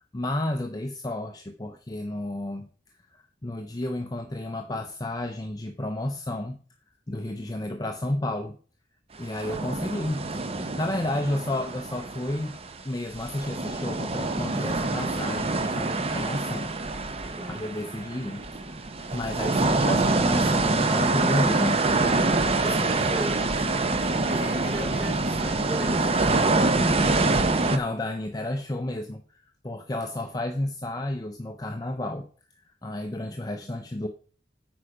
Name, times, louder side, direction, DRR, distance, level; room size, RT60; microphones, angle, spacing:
voice 1, 0.1-2.7 3.4-6.6 7.1-8.6 9.2-10.2 10.8-12.6 12.9-17.1 17.5-21.8 27.2-32.3 32.6-34.1, left 1 dB, 20° left, 5 dB, 0.5 m, -32 dB
sound 1, 9.3-12.8 13.1-27.8, right 3 dB, 35° right, 0.7 m, -25 dB
voice 2, 17.2-17.6 22.6-23.9 24.3-26.9 33.2-33.7, equal, 10° right, -4 dB, 4.3 m, -38 dB
8.8 x 5.0 x 4.9 m, 0.42 s
head